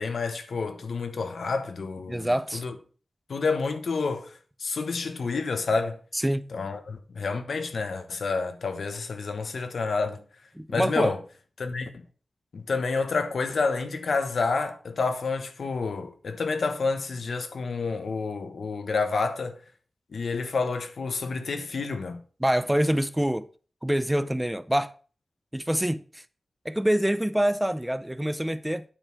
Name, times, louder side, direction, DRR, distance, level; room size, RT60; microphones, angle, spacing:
voice 1, 0.0-2.7 3.3-4.3 4.6-6.0 6.5-10.2 10.7-11.2 11.6-12.0 12.5-19.6 20.1-22.2, left 4 dB, 80° left, 1.2 m, -29 dB
voice 2, 2.1-2.6 6.1-6.5 10.6-11.2 22.4-23.5 23.8-24.9 25.5-26.2 26.6-28.8, equal, 5° right, 0.5 m, -25 dB
8.9 x 4.8 x 5.8 m
wide cardioid pair, 75°, 0 cm